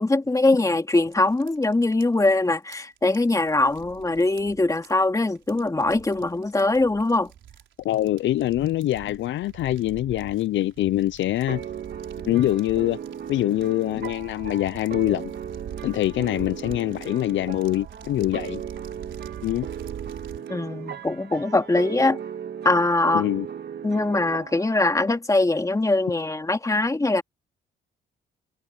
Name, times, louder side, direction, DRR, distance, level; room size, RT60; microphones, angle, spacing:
voice 1, 0.0-7.3 20.5-22.2 22.6-23.3 23.8-27.2, left 2 dB, 15° left, 2.6 m, -22 dB
sound 1, 0.9-20.5, right 10 dB, 70° right, 4.4 m, -44 dB
voice 2, 7.8-11.6 12.2-13.0 13.3-15.3 15.8-18.6 19.4-19.7 23.1-23.5, left 14 dB, 70° left, 0.5 m, -24 dB
sound 2, 11.5-25.2, right 8 dB, 55° right, 1.9 m, -37 dB
cardioid pair, 90°, 20 cm